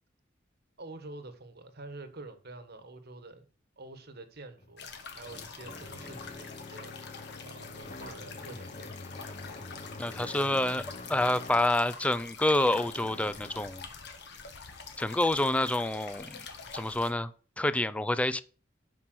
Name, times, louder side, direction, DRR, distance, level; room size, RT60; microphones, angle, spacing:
voice 1, 0.8-3.4 3.8-4.9 5.2-6.9 7.4-9.3, right 2 dB, 55° right, 1.4 m, -47 dB
sound 1, 4.6-11.8 12.7-13.8, left 3 dB, 40° left, 0.8 m, -46 dB
sound 2, 4.8-17.1, left 5 dB, 60° left, 1.5 m, -46 dB
voice 2, 10.0-13.9 15.0-16.5 16.7-17.3 17.6-18.4, left 1 dB, 5° left, 0.4 m, -28 dB
7.8 x 5.8 x 6.2 m
head